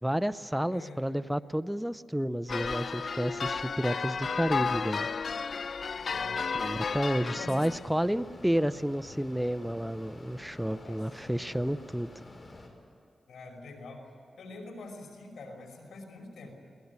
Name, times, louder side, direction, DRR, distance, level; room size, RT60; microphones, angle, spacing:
voice 1, 0.0-5.1 6.5-12.1, equal, 5° right, 15 dB, 0.6 m, -31 dB
voice 2, 0.7-1.0 6.0-6.7 7.1-7.7 10.6-11.1 13.3-14.0 14.4-16.5, left 3 dB, 90° left, 3 dB, 5.5 m, -45 dB
sound 1, 2.5-7.9, left 5 dB, 60° left, 0.6 m, -33 dB
Mechanisms, 7.6-12.7, left 2 dB, 35° left, 5.1 m, -49 dB
22.5 x 19.5 x 9.6 m, 2.6 s
cardioid pair, 70°, 0 cm